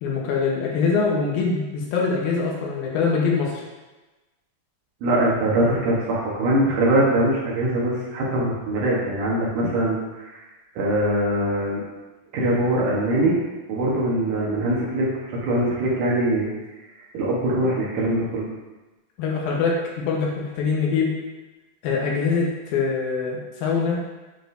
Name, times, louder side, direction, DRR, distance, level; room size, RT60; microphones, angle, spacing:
voice 1, 0.0-3.6 19.2-19.8 20.1-21.1 21.8-24.0, left 5 dB, 80° left, -2 dB, 2.8 m, -23 dB
voice 2, 5.0-10.4 10.8-11.8 12.3-13.4 13.7-16.5 17.1-18.5, right 1 dB, 65° right, -5 dB, 2.5 m, -22 dB
9.5 x 4.2 x 2.6 m, 1.1 s
omnidirectional pair, 4.2 m